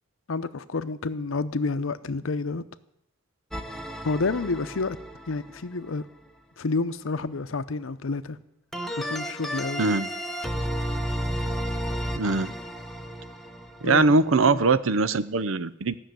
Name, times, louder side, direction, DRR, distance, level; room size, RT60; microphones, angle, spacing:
voice 1, 0.3-2.6 4.0-5.0 5.3-6.0 6.6-8.4 9.0-9.8 13.8-14.2 14.5-14.6, left 3 dB, 90° left, 0.7 m, -29 dB
sound 1, 3.5-5.7 8.7-14.4, equal, ahead, 0.9 m, -33 dB
voice 2, 9.8-10.1 12.2-12.5 13.8-16.0, right 3 dB, 80° right, 0.7 m, -22 dB
15.0 x 6.5 x 9.1 m
head